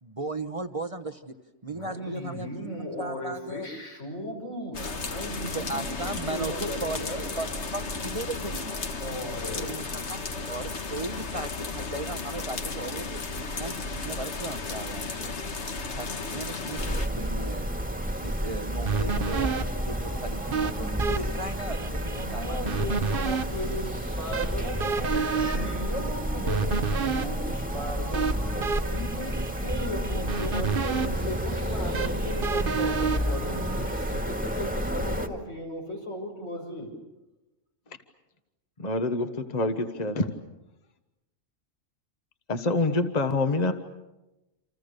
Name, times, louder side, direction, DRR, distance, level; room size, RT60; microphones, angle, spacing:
voice 1, 0.0-1.4 1.6-2.7 3.0-3.7 5.5-7.1 7.4-8.8 9.6-13.2 13.5-15.3 15.9-17.7 18.2-23.3, right 2 dB, 30° right, 8 dB, 1.2 m, -37 dB
voice 2, 1.7-7.2 9.0-9.7 22.1-36.9, equal, 85° left, 1 dB, 6.4 m, -36 dB
sound 1, 4.7-17.1, left 3 dB, 70° left, 1.9 m, -34 dB
sound 2, 16.8-35.3, equal, 5° right, 1.9 m, -30 dB
sound 3, 18.9-34.1, right 5 dB, 50° right, 1.2 m, -31 dB
voice 3, 38.8-40.3 42.5-43.7, left 2 dB, 35° left, 7 dB, 1.4 m, -26 dB
29.0 x 27.0 x 6.7 m, 1.0 s
omnidirectional pair, 1.2 m